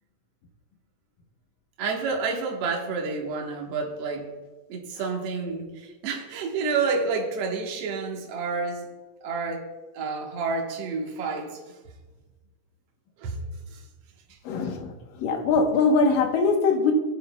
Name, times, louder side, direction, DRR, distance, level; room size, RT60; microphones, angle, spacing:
voice 1, 1.8-4.3 4.7-8.9 9.2-9.7 9.9-11.6 13.2-13.4 13.7-13.8, right 4 dB, 55° right, 0 dB, 2.1 m, -29 dB
voice 2, 14.5-14.9 15.2-16.9, left 4 dB, 85° left, 3 dB, 2.8 m, -22 dB
16.0 x 9.2 x 2.3 m, 1.2 s
omnidirectional pair, 3.8 m